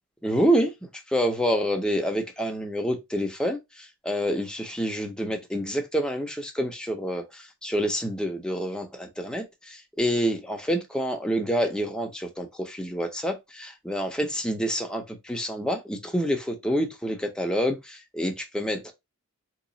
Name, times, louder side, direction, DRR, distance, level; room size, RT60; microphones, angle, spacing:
voice 1, 0.2-0.7 1.1-18.9, equal, 5° left, 0.6 m, -27 dB
2.9 x 2.3 x 3.8 m
head